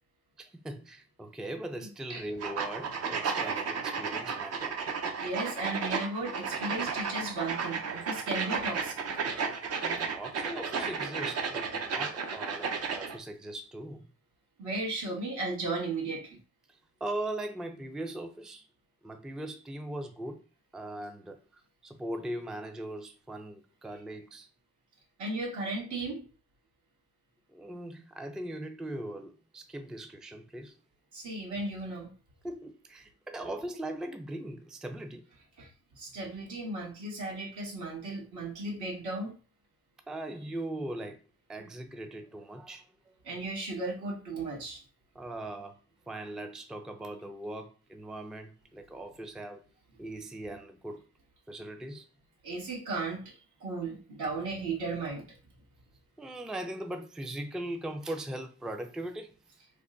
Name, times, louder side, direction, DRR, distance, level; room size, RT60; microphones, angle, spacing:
voice 1, 0.4-4.8 9.8-14.1 16.7-18.7 19.0-20.4 20.7-24.5 26.1-26.3 27.5-30.8 32.4-35.3 40.1-41.2 41.5-43.1 45.1-45.8 46.1-49.6 50.0-51.0 51.5-52.1 56.2-59.3, right 1 dB, ahead, 0.4 m, -40 dB
voice 2, 1.8-2.2 5.2-9.0 14.6-16.4 25.2-26.2 31.1-32.1 35.6-35.7 35.9-39.3 43.2-44.8 52.4-55.2, right 2 dB, 75° right, 1.7 m, -35 dB
sound 1, 2.4-13.2, right 5 dB, 55° right, 0.7 m, -33 dB
3.4 x 2.2 x 3.7 m
cardioid pair, 90°, 30 cm